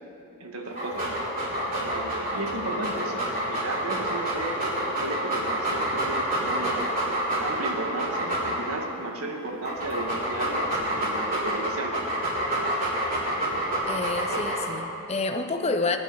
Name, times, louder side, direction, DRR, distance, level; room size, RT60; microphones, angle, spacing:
voice 1, 0.4-1.2 1.8-7.0 7.4-12.1, right 2 dB, 75° right, 2 dB, 1.6 m, -35 dB
Dog, 0.7-8.9 9.5-14.9, right 1 dB, 40° right, 3.8 m, -28 dB
voice 2, 13.9-16.0, left 3 dB, 30° left, 7 dB, 0.6 m, -28 dB
20.0 x 10.5 x 4.7 m, 2.8 s
head